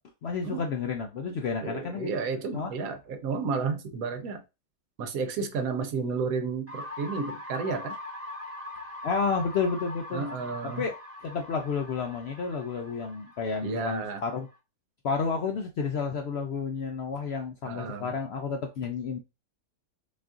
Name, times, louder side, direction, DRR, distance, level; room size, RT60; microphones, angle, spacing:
voice 1, 0.2-2.1 2.5-2.7 9.0-10.3 10.6-10.9 11.2-14.5 15.0-19.2, left 5 dB, 65° left, 0.6 m, -31 dB
voice 2, 1.6-4.4 5.0-8.0 10.1-10.8 13.6-14.2 17.6-18.1, right 4 dB, 75° right, 1.1 m, -32 dB
sound 1, 6.7-14.5, left 2 dB, 10° right, 0.9 m, -42 dB
5.3 x 2.5 x 2.4 m
omnidirectional pair, 1.6 m